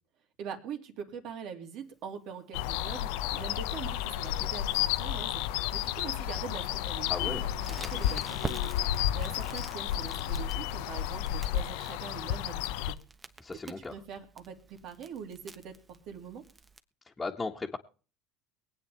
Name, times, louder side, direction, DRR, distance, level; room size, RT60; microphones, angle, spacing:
voice 1, 0.4-13.0 13.8-16.4, right 7 dB, 60° right, 5 dB, 2.8 m, -43 dB
sound 1, 2.5-12.9, left 12 dB, 75° left, 0.6 m, -32 dB
voice 2, 7.1-7.5 13.4-13.9 17.2-17.8, left 3 dB, 20° left, -2 dB, 1.7 m, -36 dB
Crackle, 7.6-16.8, right 3 dB, 20° right, 1.2 m, -46 dB
23.5 x 9.0 x 3.5 m, 0.37 s
hypercardioid pair, 85°, 0 cm